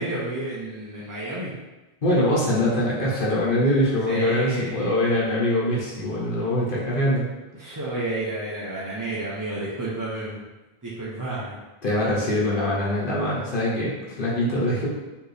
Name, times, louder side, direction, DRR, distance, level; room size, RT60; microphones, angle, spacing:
voice 1, 0.0-1.5 4.1-5.1 7.6-10.4 10.8-11.6, right 2 dB, 25° right, -7 dB, 0.5 m, -31 dB
voice 2, 2.0-7.3 7.6-7.7 11.8-14.9, left 1 dB, 55° left, -6 dB, 1.2 m, -23 dB
4.3 x 3.0 x 3.3 m, 1.1 s
omnidirectional pair, 1.1 m